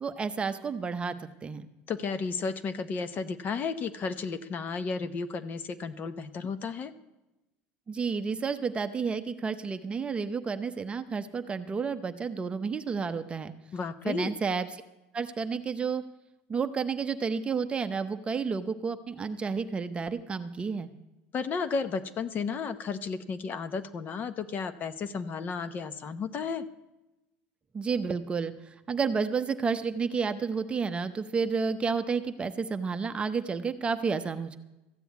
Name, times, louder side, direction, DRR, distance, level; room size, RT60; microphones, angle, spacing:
voice 1, 0.0-1.1 1.4-1.7 7.9-13.5 14.1-14.8 15.1-16.0 16.5-20.9 27.7-34.6, right 5 dB, 20° right, 9 dB, 0.7 m, -31 dB
voice 2, 1.9-6.9 13.7-14.3 21.3-26.7, left 5 dB, 35° left, 12 dB, 0.8 m, -33 dB
14.0 x 7.7 x 8.3 m, 0.99 s
supercardioid pair, 120°, 5 cm